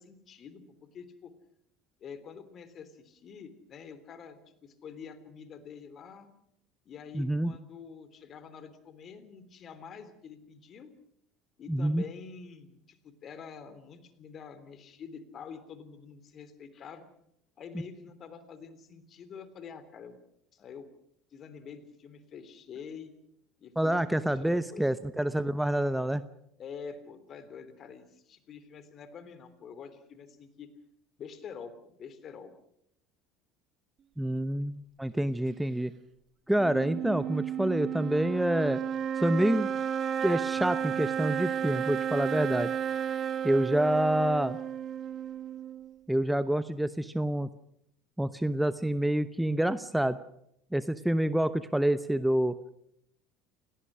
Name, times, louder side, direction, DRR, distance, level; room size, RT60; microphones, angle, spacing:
voice 1, 0.0-1.3 2.0-6.3 6.8-10.9 11.6-17.1 17.6-20.2 20.5-20.9 21.3-23.1 23.6-24.9 26.6-30.7 31.2-32.5, left 6 dB, 40° left, 12 dB, 3.2 m, -47 dB
voice 2, 7.1-7.5 11.7-12.0 23.8-26.2 34.2-35.9 36.5-38.8 39.2-39.7 40.2-42.7 43.4-44.6 46.1-47.5 48.2-50.2 50.7-52.6, right 1 dB, 5° right, 14 dB, 0.9 m, -27 dB
sound 1, 36.6-46.0, right 8 dB, 40° right, 1.3 m, -33 dB
29.5 x 18.0 x 6.2 m, 0.74 s
figure-of-eight pair, 70°, 0 cm